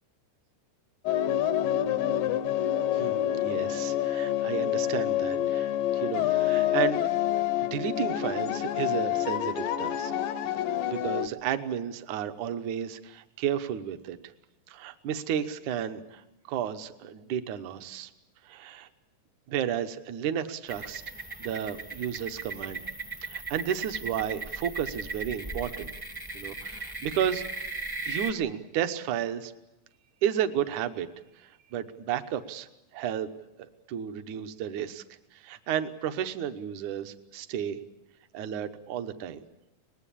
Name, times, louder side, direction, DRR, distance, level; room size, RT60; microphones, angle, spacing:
sound 1, 1.1-11.3, left 12 dB, 85° left, 2.7 m, -27 dB
voice 1, 2.9-7.0 7.3-10.1 10.8-14.2 14.7-18.1 18.4-18.9 19.5-21.0 21.4-22.9 23.3-25.9 26.3-27.6 28.0-29.5 30.2-31.1 31.4-33.3 33.6-35.0 35.3-37.8 38.3-39.4, right 9 dB, 70° right, 8 dB, 2.4 m, -32 dB
sound 2, 20.7-28.3, right 3 dB, 20° right, 0.6 m, -37 dB
24.0 x 19.5 x 8.5 m, 0.92 s
omnidirectional pair, 3.8 m